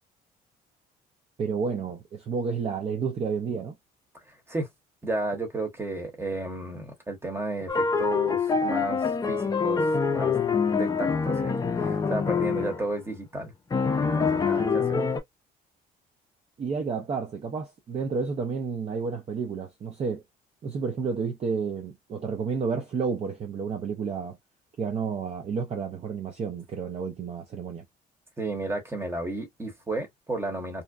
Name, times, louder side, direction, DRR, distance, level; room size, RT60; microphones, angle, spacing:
voice 1, 1.4-3.7 16.6-20.2 20.6-24.4 24.8-27.8, right 5 dB, 35° right, 0.5 m, -31 dB
voice 2, 5.0-10.3 10.7-13.5 14.1-15.0 28.4-30.8, right 2 dB, 15° right, 1.0 m, -33 dB
sound 1, 7.7-12.9 13.7-15.2, left 5 dB, 20° left, 0.5 m, -25 dB
2.6 x 2.1 x 2.3 m
cardioid pair, 110°, 17 cm